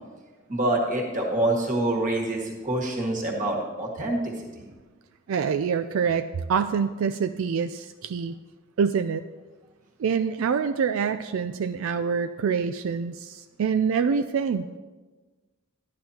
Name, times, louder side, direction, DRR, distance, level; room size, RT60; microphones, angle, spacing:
voice 1, 0.5-4.7, right 1 dB, 40° right, 0 dB, 1.7 m, -26 dB
voice 2, 5.3-8.3 8.8-9.2 10.0-14.7, right 6 dB, 80° right, 10 dB, 0.4 m, -26 dB
12.0 x 10.5 x 2.8 m, 1.3 s
head